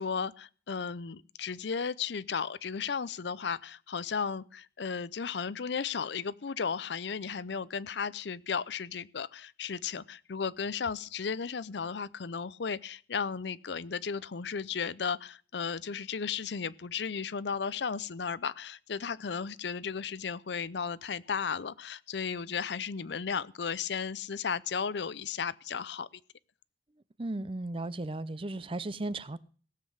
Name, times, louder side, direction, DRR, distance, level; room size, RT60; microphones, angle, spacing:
voice 1, 0.0-26.1, left 6 dB, 70° left, 0.6 m, -35 dB
voice 2, 27.2-29.4, right 2 dB, 30° right, 0.6 m, -35 dB
17.0 x 7.5 x 6.4 m
head